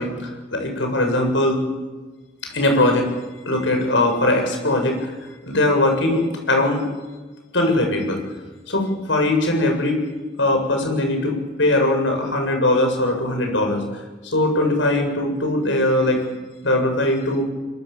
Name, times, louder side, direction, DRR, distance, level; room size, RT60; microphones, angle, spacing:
voice 1, 0.0-1.6 2.4-3.1 3.4-5.1 5.4-6.8 7.5-8.2 8.7-10.0 10.4-13.8 14.2-16.2 16.6-17.4, left 1 dB, 85° left, 3 dB, 7.5 m, -20 dB
26.0 x 24.0 x 7.3 m, 1.2 s
head